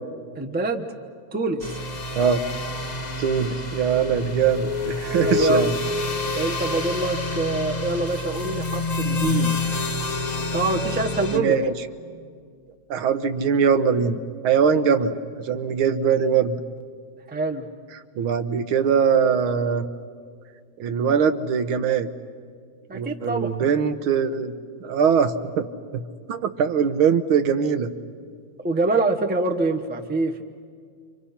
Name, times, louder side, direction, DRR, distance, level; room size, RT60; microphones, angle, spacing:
voice 1, 0.4-0.9 1.3-1.7 5.2-5.7 6.3-9.6 10.5-11.6 17.3-17.7 22.9-23.5 28.6-30.4, right 2 dB, 10° right, 4 dB, 0.4 m, -25 dB
sound 1, 1.6-11.4, left 2 dB, 25° left, 1.3 m, -27 dB
voice 2, 3.2-5.8 11.3-11.7 12.9-15.2 15.4-16.6 18.2-19.9 20.8-22.1 22.9-24.5 24.8-25.7 26.3-27.9, right 7 dB, 80° right, 10 dB, 1.7 m, -21 dB
29.5 x 25.5 x 5.8 m, 2.1 s
omnidirectional pair, 2.3 m